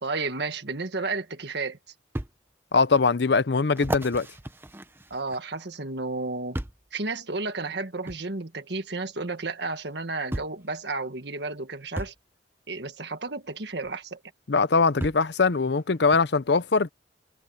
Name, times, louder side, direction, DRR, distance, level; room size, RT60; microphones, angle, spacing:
voice 1, 0.0-1.8 5.1-6.6 6.9-12.1 12.7-14.2, right 3 dB, 60° right, 1.6 m, -32 dB
sound 1, 2.1-2.3 2.9-3.0 3.7-5.6 6.5-6.9 8.1-8.2 9.5-9.6 10.3-10.6 11.9-12.2 13.8-13.9 15.0-15.3 16.1-16.2, right 1 dB, 10° right, 0.7 m, -34 dB
voice 2, 2.7-4.3 14.5-16.9, left 4 dB, 60° left, 0.6 m, -22 dB
head